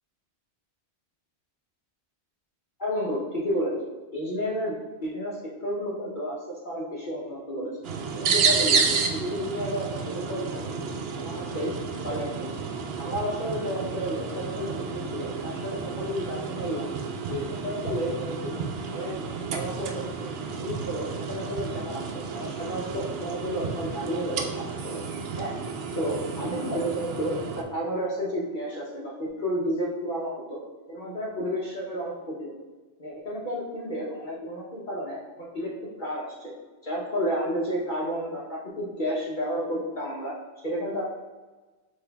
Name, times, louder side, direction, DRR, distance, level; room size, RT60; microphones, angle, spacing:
voice 1, 2.8-3.9 4.1-4.7 5.0-6.4 6.6-7.7 8.1-11.7 12.0-12.5 13.0-16.9 17.3-18.6 18.9-19.1 19.5-20.3 20.6-25.0 25.4-25.5 25.9-30.6 30.9-32.5 33.0-35.7 36.0-36.5 36.8-41.0, equal, 50° left, -5 dB, 0.9 m, -31 dB
sound 1, 7.8-27.6, right 5 dB, 70° right, 0.8 m, -31 dB
5.8 x 2.7 x 3.3 m, 1.2 s
omnidirectional pair, 1.1 m